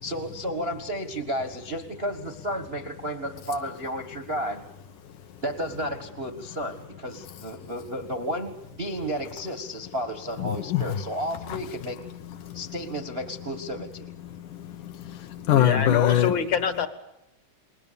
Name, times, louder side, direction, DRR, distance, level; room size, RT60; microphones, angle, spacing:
voice 1, 0.0-4.6 5.4-12.0 12.5-14.1, equal, 35° right, 1.0 m, -32 dB
voice 2, 10.4-11.0 11.5-11.6 12.4-12.6 14.3-16.3, left 11 dB, 75° left, 2.8 m, -24 dB
voice 3, 15.4-16.9, left 6 dB, 45° left, 1.7 m, -26 dB
29.5 x 21.5 x 7.0 m
omnidirectional pair, 3.7 m